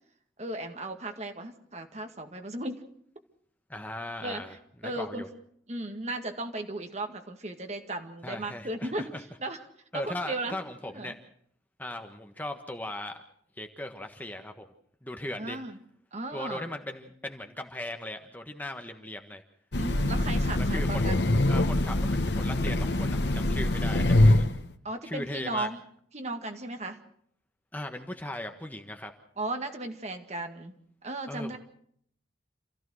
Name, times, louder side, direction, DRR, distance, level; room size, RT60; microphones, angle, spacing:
voice 1, 0.4-2.8 4.2-4.4 4.8-5.2 5.7-9.1 9.4-9.6 9.9-10.6 10.9-11.1 15.4-15.8 16.1-16.7 19.8-21.2 24.8-25.8 26.1-27.0 29.4-30.7 31.0-31.6, right 2 dB, 35° right, 5 dB, 2.0 m, -35 dB
voice 2, 3.7-4.6 4.8-5.3 8.2-9.2 9.9-11.2 11.8-13.2 13.6-14.6 15.0-15.6 16.3-19.4 20.6-21.1 21.5-24.4 25.0-25.7 27.7-29.1 31.3-31.6, left 1 dB, 10° left, 5 dB, 1.4 m, -38 dB
Train, 19.7-24.6, left 1 dB, 65° left, 1.2 m, -24 dB
28.0 x 15.0 x 6.4 m, 0.66 s
head